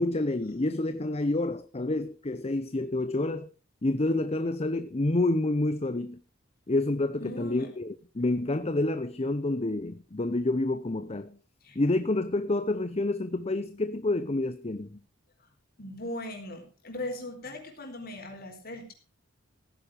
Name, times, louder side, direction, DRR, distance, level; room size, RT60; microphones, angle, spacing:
voice 1, 0.0-3.5 3.8-6.2 6.7-11.4 11.7-15.0, left 2 dB, 30° left, 0.7 m, -28 dB
voice 2, 7.2-7.7 11.6-11.8 15.8-18.9, left 1 dB, 50° left, 4.6 m, -39 dB
16.0 x 10.0 x 5.0 m
head